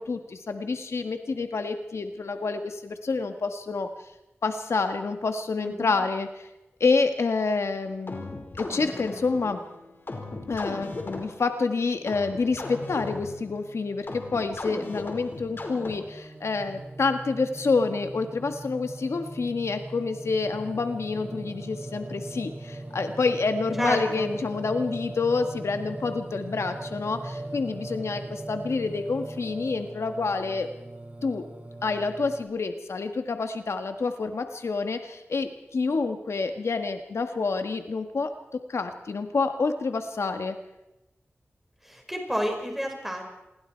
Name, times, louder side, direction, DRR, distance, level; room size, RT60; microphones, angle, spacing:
voice 1, 0.0-3.9 4.4-6.5 6.8-9.6 10.5-30.7 31.2-31.5 31.8-40.6, left 4 dB, 80° left, 7 dB, 1.6 m, -28 dB
voice 2, 5.6-6.0 23.8-24.3 41.8-43.2, equal, 5° right, 2 dB, 5.3 m, -30 dB
sound 1, 8.1-16.3, left 2 dB, 55° left, 5.1 m, -38 dB
Singing, 15.3-32.4, right 2 dB, 30° right, 5.7 m, -39 dB
28.0 x 22.0 x 4.6 m, 0.94 s
wide cardioid pair, 100°, 5 cm